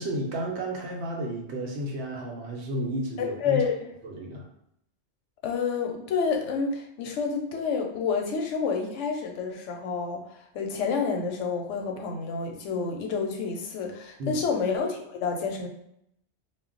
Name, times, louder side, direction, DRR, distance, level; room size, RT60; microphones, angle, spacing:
voice 1, 0.0-3.6 4.0-4.4 14.2-14.4, equal, 70° right, 0 dB, 0.9 m, -32 dB
voice 2, 3.2-3.8 5.4-15.7, left 5 dB, 85° left, 3 dB, 0.9 m, -29 dB
2.2 x 2.1 x 3.7 m, 0.75 s
omnidirectional pair, 1.2 m